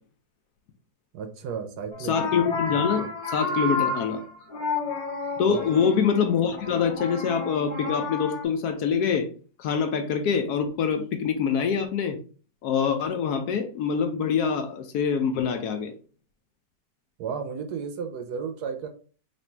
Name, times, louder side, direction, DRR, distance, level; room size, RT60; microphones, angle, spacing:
voice 1, 1.1-2.2 5.4-5.9 17.2-18.9, right 6 dB, 70° right, 1.1 m, -33 dB
sound 1, 1.9-8.4, left 3 dB, 50° left, 1.0 m, -31 dB
voice 2, 2.0-4.2 5.4-9.3 9.6-12.2 12.6-15.9, left 6 dB, 70° left, 1.0 m, -25 dB
3.2 x 2.6 x 4.4 m
omnidirectional pair, 1.9 m